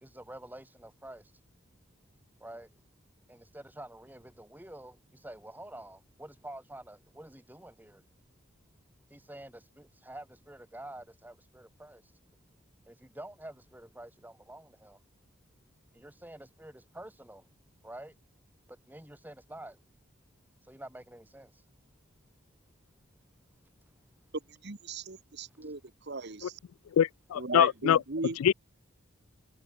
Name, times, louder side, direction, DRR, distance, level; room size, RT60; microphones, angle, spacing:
voice 1, 0.0-1.2 2.4-2.7 3.3-8.0 9.1-12.0 12.9-15.0 15.9-17.4 17.8-18.1 18.9-19.8 20.7-21.5, right 1 dB, 10° right, 1.8 m, -48 dB
voice 2, 24.6-25.8 26.1-26.6 27.3-28.4, right 3 dB, 50° right, 1.3 m, -37 dB
voice 3, 27.0-28.0 28.4-28.5, left 9 dB, 90° left, 0.3 m, -24 dB
head